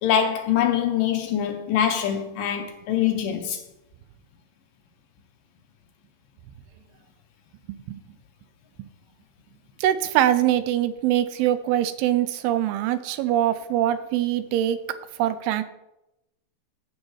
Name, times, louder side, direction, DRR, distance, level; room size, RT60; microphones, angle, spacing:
voice 1, 0.0-3.6, left 9 dB, 75° left, 2.2 m, -24 dB
voice 2, 7.7-8.0 8.8-8.9 9.8-15.6, right 12 dB, 90° right, 2.6 m, -23 dB
15.0 x 6.3 x 3.2 m
omnidirectional pair, 4.4 m